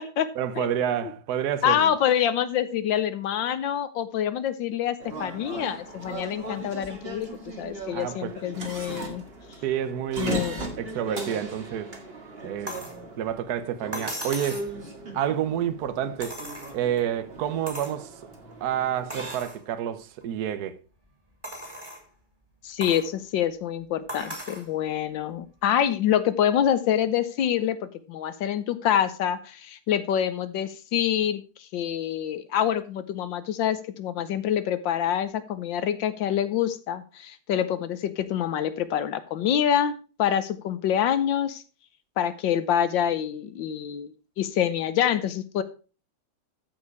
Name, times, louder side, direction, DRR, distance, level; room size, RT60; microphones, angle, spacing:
voice 1, 0.3-1.9 7.9-8.3 9.6-10.5 10.7-11.9 12.4-12.9 13.2-14.7 15.1-16.4 16.7-18.1 18.6-20.8, right 10 dB, 60° right, 1.2 m, -29 dB
voice 2, 1.6-7.3 7.6-9.2 10.2-10.7 22.6-41.6 42.2-44.1 44.4-45.6, left 10 dB, 70° left, 1.3 m, -26 dB
sound 1, 5.0-19.4, right 2 dB, 30° right, 1.7 m, -38 dB
sound 2, 12.7-13.0 13.9-14.7 16.2-17.0 17.7-18.0 18.5-18.6 19.1-19.6 20.2-20.3 21.4-22.0 22.8-23.1 24.1-24.7 25.9-26.0, equal, 10° right, 2.4 m, -37 dB
13.5 x 5.0 x 4.7 m
omnidirectional pair, 2.3 m